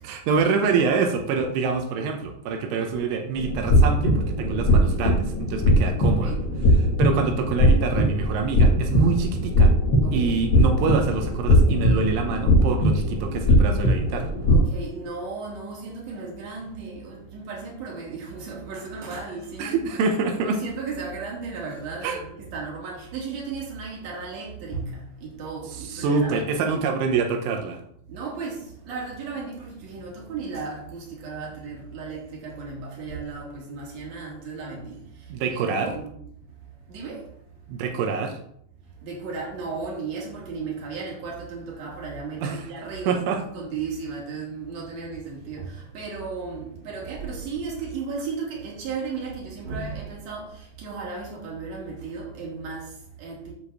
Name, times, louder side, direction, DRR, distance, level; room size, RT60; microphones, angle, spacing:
voice 1, 0.0-6.4 6.8-9.7 10.1-14.3 19.6-20.6 22.0-22.2 25.9-27.8 35.3-35.9 37.7-38.4 42.4-42.7 43.1-43.4, right 5 dB, 85° right, 3.6 m, -26 dB
sound 1, 3.4-14.6, equal, 85° left, 1.1 m, -20 dB
voice 2, 10.0-10.5 14.5-19.9 20.4-26.8 28.1-36.2 36.9-37.3 39.0-43.2 43.5-53.5, right 4 dB, 40° right, 3.5 m, -35 dB
8.6 x 5.1 x 7.1 m
omnidirectional pair, 5.4 m